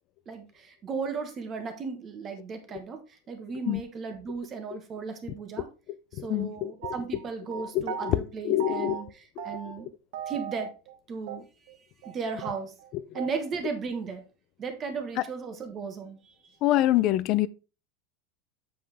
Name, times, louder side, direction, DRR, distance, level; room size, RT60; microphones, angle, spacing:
voice 1, 0.3-3.0 3.3-5.7 6.1-9.9 10.3-10.7 11.1-11.4 12.0-12.7 13.1-14.2 14.6-16.5, right 5 dB, 25° right, 1.2 m, -36 dB
voice 2, 6.3-6.7 7.7-9.0 9.4-9.5 12.9-13.0 16.6-17.5, left 14 dB, 40° left, 0.4 m, -25 dB
sound 1, 6.8-8.2 8.6-9.1 9.4-9.9 10.1-11.0 11.3-11.4 11.7-11.8 12.0-12.1 12.4-13.4, right 7 dB, 70° right, 1.0 m, -37 dB
7.7 x 5.5 x 3.4 m
supercardioid pair, 155°, 0 cm